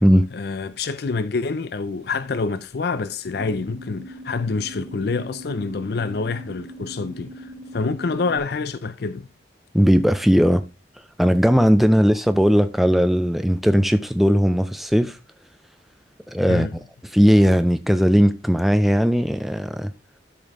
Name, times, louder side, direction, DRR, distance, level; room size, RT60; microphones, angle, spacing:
voice 1, 0.3-9.3 16.5-16.7, left 4 dB, 60° left, 0.5 m, -27 dB
sound 1, 3.4-8.4, right 1 dB, 40° right, 1.9 m, -40 dB
voice 2, 9.7-10.7 11.2-15.2 16.3-19.9, equal, ahead, 0.4 m, -18 dB
13.0 x 5.2 x 3.6 m
head